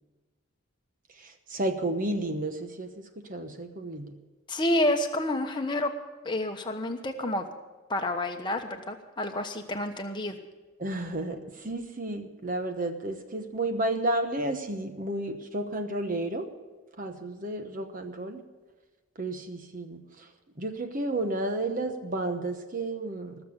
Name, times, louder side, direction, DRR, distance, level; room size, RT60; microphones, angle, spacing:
voice 1, 1.1-4.1 10.8-16.5 17.0-18.4 19.2-20.3 20.6-23.4, right 2 dB, 40° right, 6 dB, 1.0 m, -32 dB
voice 2, 4.5-5.9 6.2-7.5 7.9-10.4, left 1 dB, 20° left, 4 dB, 1.1 m, -29 dB
20.0 x 7.0 x 8.2 m, 1.2 s
head